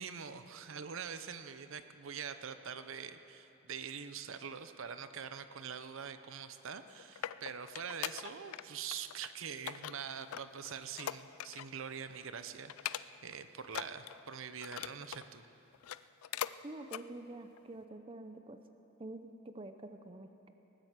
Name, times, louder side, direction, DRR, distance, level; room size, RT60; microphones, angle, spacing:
voice 1, 0.0-15.5, right 7 dB, 65° right, 10 dB, 0.7 m, -44 dB
sound 1, 6.7-8.6 8.9-9.3 9.7-11.8 12.1-12.3 12.7-13.3 13.7-15.3 15.7-16.6 16.9-17.1 17.6-17.7, left 11 dB, 90° left, 0.4 m, -42 dB
voice 2, 16.6-18.6 19.0-20.5, right 2 dB, 25° right, 8 dB, 0.6 m, -47 dB
19.0 x 8.9 x 8.1 m, 3.0 s
head